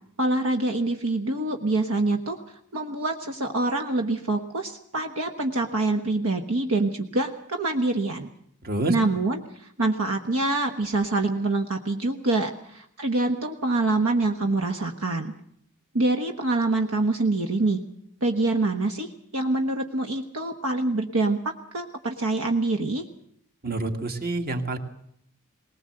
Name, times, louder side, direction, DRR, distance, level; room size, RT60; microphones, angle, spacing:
voice 1, 0.2-2.4 2.7-8.3 8.9-15.3 15.9-17.8 18.2-23.1, right 2 dB, 70° right, 5 dB, 1.3 m, -25 dB
voice 2, 23.6-24.8, right 2 dB, 45° right, 6 dB, 1.9 m, -27 dB
20.0 x 19.5 x 7.8 m, 0.68 s
head